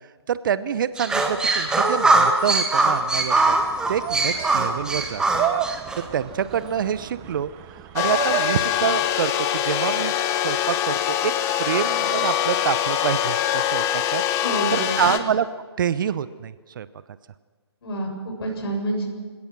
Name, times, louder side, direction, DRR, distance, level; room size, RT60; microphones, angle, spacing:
voice 1, 0.3-3.6 3.9-5.4 5.9-7.5 7.9-11.3 11.6-14.2 14.7-15.5 15.8-16.9, right 8 dB, 45° right, 15 dB, 0.9 m, -26 dB
sound 1, 1.0-6.0, right 3 dB, 5° right, 1.9 m, -21 dB
sound 2, 2.7-9.1, right 11 dB, 20° right, 1.1 m, -32 dB
sound 3, 8.0-15.2, left 11 dB, 20° left, 1.2 m, -23 dB
voice 2, 14.4-15.1 17.8-19.0, right 1 dB, 60° left, 1 dB, 7.7 m, -27 dB
29.0 x 17.0 x 6.1 m, 1.5 s
figure-of-eight pair, 140°, 14 cm